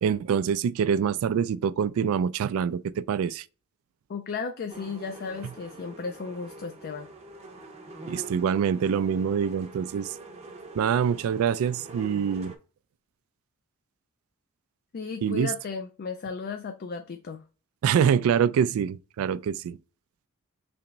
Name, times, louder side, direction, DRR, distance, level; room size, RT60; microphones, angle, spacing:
voice 1, 0.0-3.4 8.1-10.1 10.8-12.5 15.2-15.5 17.8-19.8, right 7 dB, 75° right, 0.3 m, -25 dB
voice 2, 4.1-7.1 14.9-17.4, left 5 dB, 50° left, 0.4 m, -35 dB
sound 1, 4.7-12.6, right 2 dB, 30° right, 0.6 m, -44 dB
3.4 x 2.9 x 3.9 m
head